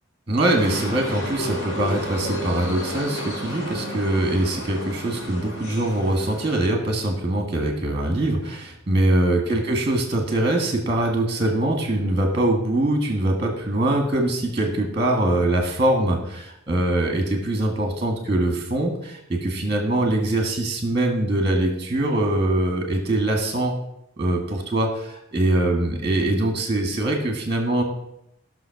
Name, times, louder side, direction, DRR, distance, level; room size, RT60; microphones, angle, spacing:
voice 1, 0.3-23.7 24.2-27.8, right 1 dB, 25° right, 2 dB, 1.7 m, -23 dB
sound 1, 0.6-6.6, left 1 dB, 90° left, 4.0 m, -32 dB
15.0 x 6.3 x 5.9 m, 0.79 s
head